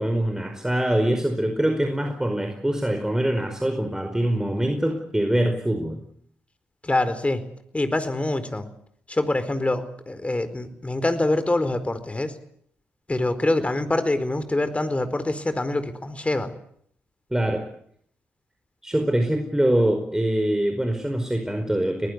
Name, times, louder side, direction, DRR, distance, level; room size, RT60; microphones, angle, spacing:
voice 1, 0.0-6.0 17.3-17.6 18.8-22.1, right 1 dB, 10° right, 5 dB, 4.8 m, -24 dB
voice 2, 6.8-7.4 7.7-8.7 9.1-12.4 13.1-16.5, left 2 dB, 20° left, 11 dB, 4.4 m, -25 dB
25.0 x 19.5 x 8.2 m, 0.66 s
hypercardioid pair, 40°, 6 cm